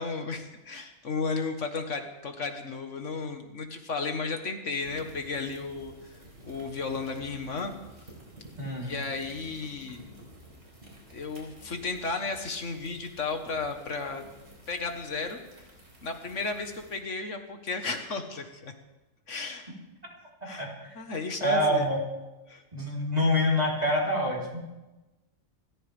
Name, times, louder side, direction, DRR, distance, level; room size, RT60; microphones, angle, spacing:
voice 1, 0.0-6.2 6.4-7.7 8.8-10.0 11.1-14.2 14.7-15.4 16.0-18.7 19.3-19.7 20.5-20.7 20.9-21.9 22.5-22.6, left 4 dB, 75° left, 5 dB, 1.8 m, -34 dB
sound 1, 4.8-17.0, right 1 dB, 55° right, 4.6 m, -51 dB
voice 2, 8.6-8.9 20.6-20.9 21.4-22.0 22.7-24.6, left 1 dB, 30° right, -4 dB, 4.2 m, -26 dB
27.5 x 14.0 x 3.5 m, 1.0 s
omnidirectional pair, 1.3 m